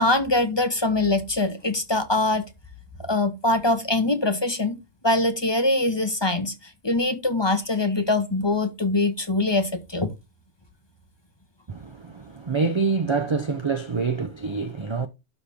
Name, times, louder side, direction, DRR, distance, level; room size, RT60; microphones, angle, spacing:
voice 1, 0.0-2.4 3.0-4.8 5.0-6.5 6.8-10.1, left 2 dB, 25° left, 1.0 m, -23 dB
voice 2, 11.7-15.1, right 4 dB, 40° right, 0.4 m, -26 dB
11.5 x 4.4 x 3.5 m
omnidirectional pair, 1.3 m